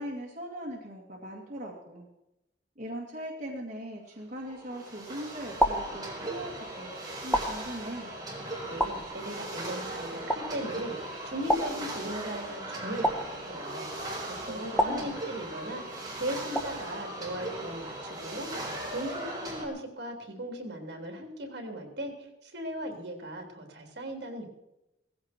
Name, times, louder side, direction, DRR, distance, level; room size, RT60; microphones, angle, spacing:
voice 1, 0.0-2.1 2.8-6.9 7.2-8.2 14.5-15.2, equal, 40° right, -2 dB, 2.3 m, -40 dB
sound 1, 4.4-19.6, right 1 dB, 20° right, 4.3 m, -38 dB
sound 2, 4.5-5.0 5.6-6.6 7.3-8.2 8.8-9.6 10.3-10.9 11.5-12.4 13.0-13.9 14.8-15.7 16.6-17.2, equal, 5° left, 1.5 m, -31 dB
voice 2, 8.6-14.1 14.4-24.5, right 1 dB, 60° right, 3 dB, 3.4 m, -38 dB
17.5 x 15.5 x 4.5 m, 0.89 s
head